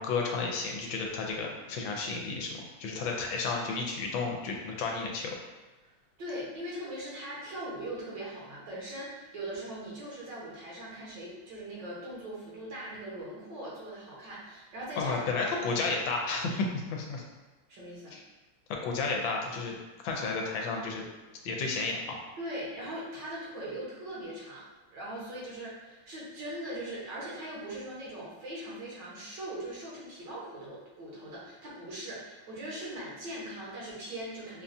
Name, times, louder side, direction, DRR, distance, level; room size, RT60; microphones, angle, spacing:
voice 1, 0.0-5.4 15.0-17.2 18.1-18.2 18.8-19.7 20.0-21.1 21.4-22.2, left 4 dB, 80° left, 0 dB, 1.4 m, -32 dB
voice 2, 6.2-15.6 17.7-18.2 22.4-34.6, right 1 dB, 65° right, -6 dB, 1.8 m, -40 dB
5.4 x 2.3 x 2.6 m, 1.2 s
omnidirectional pair, 2.1 m